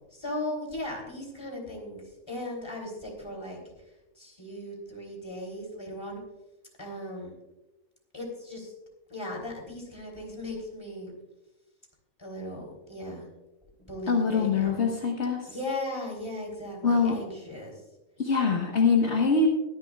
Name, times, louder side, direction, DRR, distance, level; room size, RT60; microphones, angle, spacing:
voice 1, 0.0-3.9 4.1-6.2 6.8-7.3 8.1-8.7 9.1-11.1 12.2-13.3 13.9-14.9 15.5-17.8, left 1 dB, 20° left, 0 dB, 3.4 m, -37 dB
voice 2, 14.1-15.5 16.8-17.2 18.2-19.5, left 4 dB, 60° left, 0 dB, 1.7 m, -24 dB
22.5 x 10.5 x 2.4 m, 0.98 s
omnidirectional pair, 1.4 m